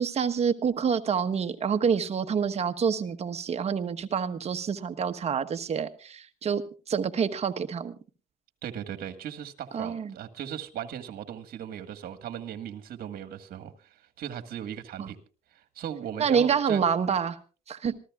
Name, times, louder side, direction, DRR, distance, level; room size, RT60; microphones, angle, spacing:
voice 1, 0.0-6.6 6.9-7.9 9.7-10.1 15.0-15.1 16.2-17.4 17.7-18.0, right 6 dB, 40° right, 8 dB, 1.2 m, -27 dB
voice 2, 8.6-15.2 15.5-16.8, right 9 dB, 60° right, 8 dB, 1.7 m, -38 dB
26.5 x 15.0 x 2.4 m, 0.35 s
cardioid pair, 110°, 17 cm